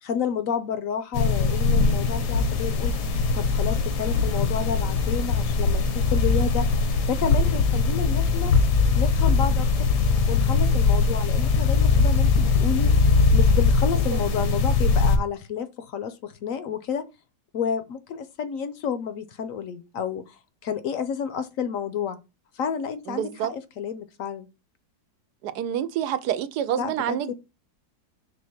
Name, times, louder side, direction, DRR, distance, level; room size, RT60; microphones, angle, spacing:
voice 1, 0.0-3.0 3.3-6.7 7.1-8.5 9.0-9.7 10.3-12.9 13.3-17.0 17.5-22.2 22.5-24.5 26.8-27.3, left 7 dB, 65° left, 0.9 m, -30 dB
sound 1, 1.1-15.2, left 4 dB, 85° left, 1.6 m, -21 dB
voice 2, 23.1-23.5 25.4-27.3, right 10 dB, 85° right, 1.2 m, -27 dB
5.3 x 3.4 x 5.7 m
omnidirectional pair, 1.7 m